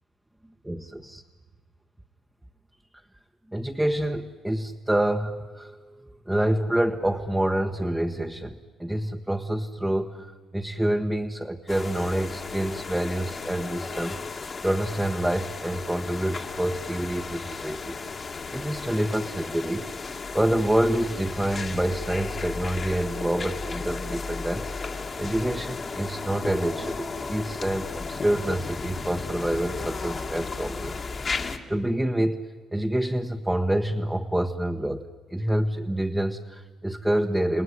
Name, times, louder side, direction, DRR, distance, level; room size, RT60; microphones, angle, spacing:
voice 1, 0.6-1.2 3.5-18.1 18.5-19.8 20.3-37.6, right 1 dB, 10° right, 2 dB, 1.3 m, -27 dB
sound 1, 11.7-31.6, left 4 dB, 40° left, 1.9 m, -34 dB
29.5 x 19.5 x 9.7 m, 1.4 s
cardioid pair, 90°, 0 cm